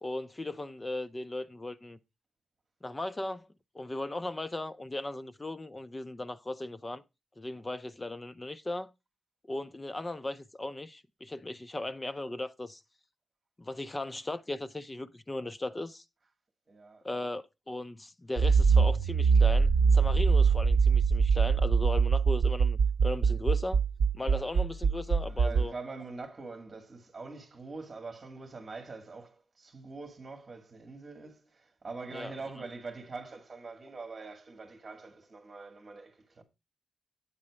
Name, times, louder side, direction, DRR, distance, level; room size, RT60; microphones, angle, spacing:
voice 1, 0.0-2.0 2.8-3.5 3.7-7.0 7.4-8.9 9.5-12.8 13.6-16.0 17.0-23.8 24.1-25.7 32.1-32.3 32.6-32.7, left 2 dB, 15° left, 0.4 m, -37 dB
voice 2, 16.7-17.3 24.2-24.4 24.9-36.4, right 3 dB, 25° right, 2.1 m, -44 dB
Accelerating revving vroom, 18.4-25.6, right 5 dB, 80° right, 0.5 m, -23 dB
8.9 x 4.2 x 4.8 m
wide cardioid pair, 175°, 0 cm